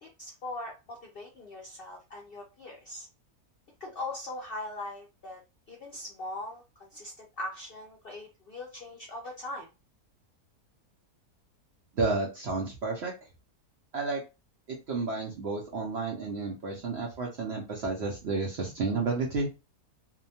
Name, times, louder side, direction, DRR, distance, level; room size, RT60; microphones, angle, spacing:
voice 1, 0.0-3.1 3.8-5.4 5.7-9.7, left 2 dB, 60° left, -2 dB, 0.6 m, -40 dB
voice 2, 11.9-13.1 13.9-14.2 14.7-19.5, right 3 dB, 60° right, -1 dB, 0.7 m, -31 dB
2.7 x 2.1 x 2.7 m, 0.27 s
omnidirectional pair, 1.7 m